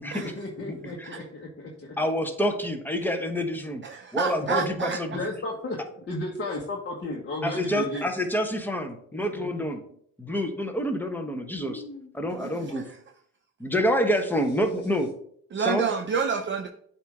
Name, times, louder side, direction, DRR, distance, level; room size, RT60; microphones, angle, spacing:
voice 1, 0.0-1.9 4.5-4.6 5.1-8.1 9.1-9.7 11.6-12.1, left 2 dB, 40° left, -2 dB, 1.3 m, -34 dB
voice 2, 0.7-1.1 2.0-3.8 4.1-5.2 7.4-9.8 10.2-11.8 12.1-12.8 13.6-15.1 15.6-15.8, equal, 5° left, 5 dB, 1.1 m, -27 dB
voice 3, 3.8-5.0 12.4-13.0 15.5-16.7, right 6 dB, 40° right, 4 dB, 0.6 m, -29 dB
8.2 x 2.9 x 4.8 m, 0.64 s
cardioid pair, 90°, 30 cm